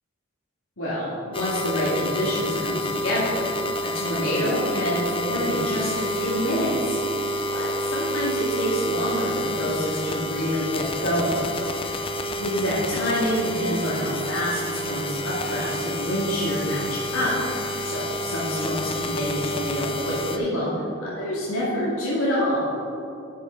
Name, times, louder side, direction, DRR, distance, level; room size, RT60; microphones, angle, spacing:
voice 1, 0.8-3.5 3.9-7.0 7.5-11.4 11.8-12.0 12.4-20.7 21.0-22.6, equal, 80° left, -8 dB, 2.1 m, -27 dB
sound 1, 1.3-20.4, equal, 25° left, 0.5 m, -29 dB
11.5 x 6.7 x 3.9 m, 2.8 s
head